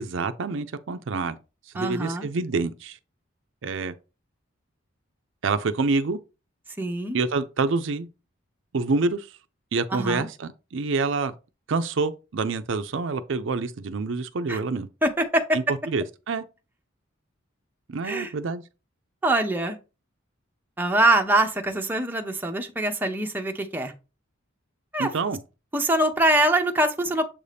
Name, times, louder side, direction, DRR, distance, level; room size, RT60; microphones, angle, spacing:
voice 1, 0.0-1.4 1.7-3.0 3.6-3.9 5.4-6.2 7.1-8.1 8.7-9.4 9.7-11.3 11.7-14.9 15.5-16.4 17.9-18.6 25.0-25.4, right 3 dB, 65° right, 0.5 m, -27 dB
voice 2, 1.7-2.3 6.8-7.2 9.9-10.3 14.5-14.6 15.0-15.6 18.0-18.3 19.2-19.8 20.8-23.9 24.9-25.1 25.7-27.3, right 1 dB, 10° right, 0.7 m, -23 dB
7.3 x 2.7 x 5.0 m
head